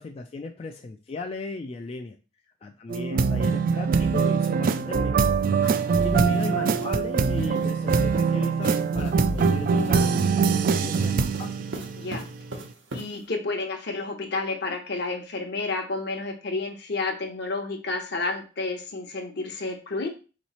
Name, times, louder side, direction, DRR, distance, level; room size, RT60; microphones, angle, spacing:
voice 1, 0.0-2.2 2.6-5.2 6.0-11.7, left 3 dB, 35° left, 5 dB, 0.3 m, -36 dB
sound 1, 2.9-12.5, right 5 dB, 50° right, 0.3 m, -23 dB
sound 2, 5.6-7.8 8.6-13.3, right 2 dB, 85° right, 0.9 m, -41 dB
voice 2, 12.9-20.1, left 3 dB, 65° left, 4 dB, 0.9 m, -30 dB
3.9 x 3.1 x 4.1 m, 0.33 s
head